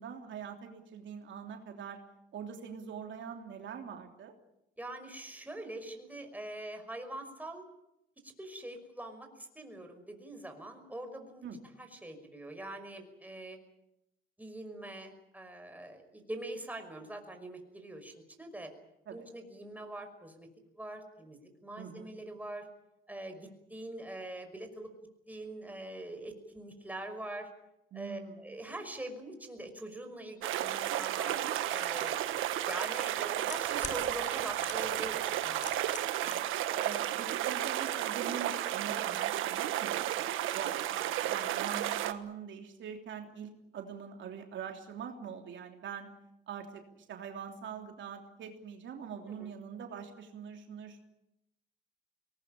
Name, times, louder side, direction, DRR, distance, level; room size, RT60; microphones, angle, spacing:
voice 1, 0.0-2.0 2.3-4.3 11.4-11.6 19.1-19.3 21.8-22.1 27.9-28.4 36.2-36.5 36.8-46.1 46.5-51.0, right 7 dB, 70° right, 3 dB, 3.2 m, -43 dB
voice 2, 4.8-7.6 8.2-11.4 11.8-13.6 14.4-18.1 18.4-18.7 19.1-20.5 20.8-22.7 23.1-24.9 25.3-27.5 27.9-31.4 31.7-32.3 32.7-35.9 36.7-36.9 49.3-49.5, right 1 dB, 10° right, 5 dB, 5.7 m, -43 dB
sound 1, 30.4-42.1, right 12 dB, 90° right, 1.4 m, -33 dB
sound 2, 32.0-32.1 33.0-34.0 34.6-35.0 35.3-36.3 36.6-36.7, left 4 dB, 40° left, 4.4 m, -42 dB
22.5 x 19.5 x 9.0 m, 0.85 s
cardioid pair, 90°, 20 cm